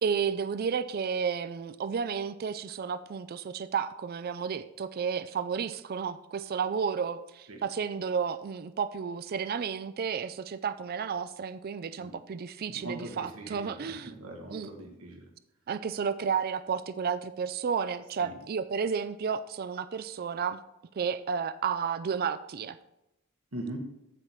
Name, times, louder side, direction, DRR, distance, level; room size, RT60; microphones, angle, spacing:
voice 1, 0.0-14.2 14.5-14.7 15.7-20.6 21.0-22.8, right 6 dB, 45° right, 13 dB, 0.4 m, -32 dB
voice 2, 12.7-15.3 18.2-18.3 23.5-23.8, right 1 dB, 90° right, 2 dB, 1.5 m, -41 dB
14.5 x 5.5 x 3.1 m, 0.89 s
head